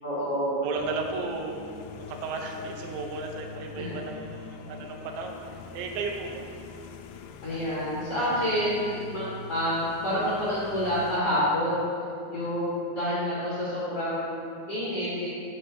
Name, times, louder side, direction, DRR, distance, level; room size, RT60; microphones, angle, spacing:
voice 1, 0.0-0.6 3.7-3.9 7.4-11.8 12.3-14.4 14.7-15.3, equal, 55° left, -10 dB, 1.6 m, -28 dB
voice 2, 0.6-1.6 2.0-6.4, right 4 dB, 90° right, 1 dB, 3.0 m, -34 dB
sound 1, 0.8-11.2, left 5 dB, 85° left, 2.5 m, -44 dB
8.9 x 6.6 x 3.9 m, 2.4 s
omnidirectional pair, 5.2 m